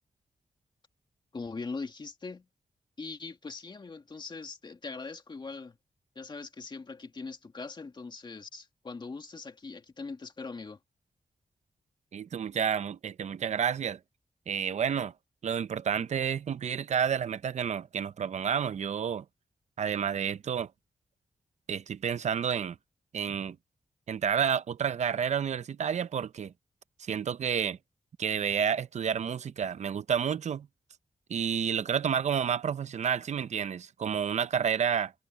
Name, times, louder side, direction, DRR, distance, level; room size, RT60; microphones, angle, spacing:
voice 1, 1.3-2.5 3.0-5.8 6.2-10.8, left 4 dB, 35° left, 2.1 m, -41 dB
voice 2, 12.1-14.0 14.5-15.1 15.4-19.2 19.8-20.7 21.7-22.8 23.1-23.6 24.1-26.5 27.0-27.8 28.2-30.7 31.3-35.1, right 7 dB, 65° right, 0.7 m, -30 dB
wide cardioid pair, 130°, 13 cm